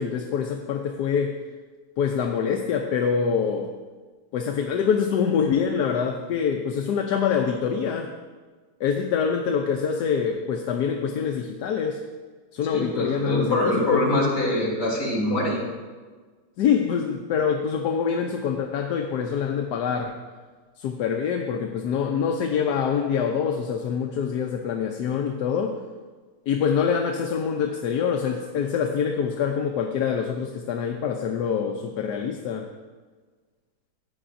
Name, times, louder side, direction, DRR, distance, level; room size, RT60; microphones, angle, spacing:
voice 1, 0.0-1.4 2.0-3.7 4.3-8.1 8.8-12.0 12.5-14.1 16.6-20.2 20.8-25.8 26.5-32.7, left 7 dB, 70° left, 3 dB, 1.2 m, -25 dB
voice 2, 12.6-15.6, left 1 dB, 45° left, -5 dB, 3.6 m, -24 dB
15.0 x 9.7 x 2.6 m, 1.4 s
omnidirectional pair, 1.9 m